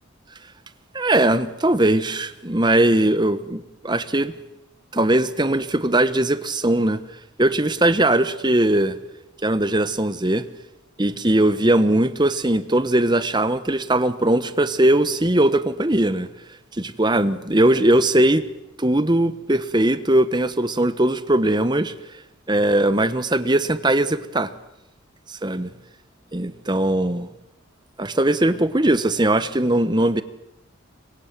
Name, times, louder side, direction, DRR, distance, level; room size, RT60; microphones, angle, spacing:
voice 1, 0.9-4.3 4.9-7.0 7.4-8.9 9.4-10.4 11.0-16.3 16.7-18.4 18.8-21.9 22.5-24.5 25.3-25.7 26.3-27.3 28.0-30.2, right 1 dB, 20° right, 1.1 m, -20 dB
30.0 x 23.5 x 7.5 m
head